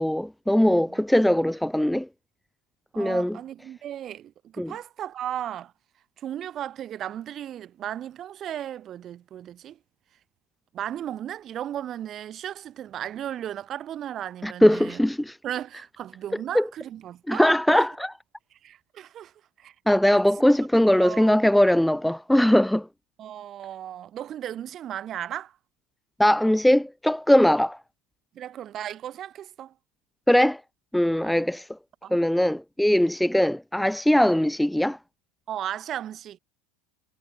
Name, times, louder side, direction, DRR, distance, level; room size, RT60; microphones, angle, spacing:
voice 1, 0.0-2.1 3.0-3.4 4.6-4.7 14.4-15.4 16.5-16.6 17.3-18.1 19.9-22.9 26.2-27.8 30.3-30.6 30.9-31.7 32.1-35.0, left 1 dB, 5° left, 0.4 m, -20 dB
voice 2, 0.7-1.0 2.9-5.7 6.2-9.8 10.7-15.0 15.4-17.9 18.6-19.3 19.6-19.7 20.1-20.2 21.0-21.3 23.2-25.6 28.3-29.7 31.2-31.5 32.0-32.1 32.5-32.6 35.5-36.4, right 11 dB, 40° right, 5.8 m, -35 dB
hypercardioid pair, 80°, 0 cm